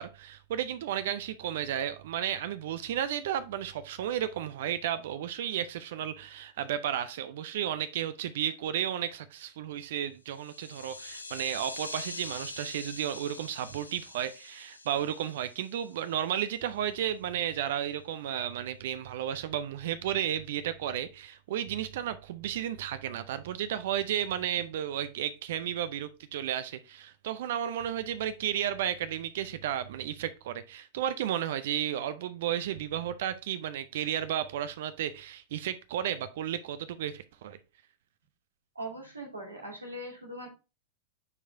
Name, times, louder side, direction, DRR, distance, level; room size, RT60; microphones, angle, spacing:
voice 1, 0.0-37.6, right 10 dB, 55° right, 0.4 m, -33 dB
sound 1, 10.3-16.3, left 2 dB, 80° left, 0.7 m, -44 dB
voice 2, 38.7-40.5, right 1 dB, 80° right, 2.2 m, -40 dB
9.7 x 4.7 x 2.6 m
figure-of-eight pair, 90°, 0 cm